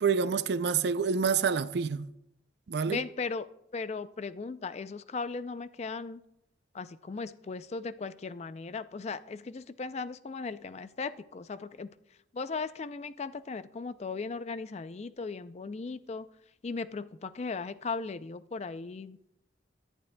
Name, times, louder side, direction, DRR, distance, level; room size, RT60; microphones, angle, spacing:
voice 1, 0.0-2.1 2.7-3.0, right 6 dB, 60° right, 0.4 m, -27 dB
voice 2, 2.9-3.5 3.7-6.2 6.7-11.9 12.3-16.3 16.6-19.3, left 4 dB, 35° left, 0.4 m, -37 dB
18.0 x 11.0 x 2.2 m
head